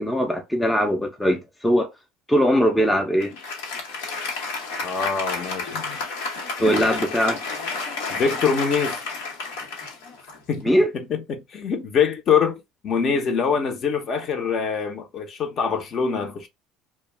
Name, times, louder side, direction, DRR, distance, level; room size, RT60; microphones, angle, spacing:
voice 1, 0.0-1.9 2.3-3.3 6.6-7.4 10.6-10.9, equal, 10° left, 0.5 m, -20 dB
Applause, 3.2-10.8, left 4 dB, 90° left, 1.0 m, -31 dB
voice 2, 4.8-6.0 6.6-6.9 8.1-9.0 10.5-10.7 11.1-16.5, left 6 dB, 45° left, 0.7 m, -24 dB
2.3 x 2.1 x 3.2 m
supercardioid pair, 110°, 0 cm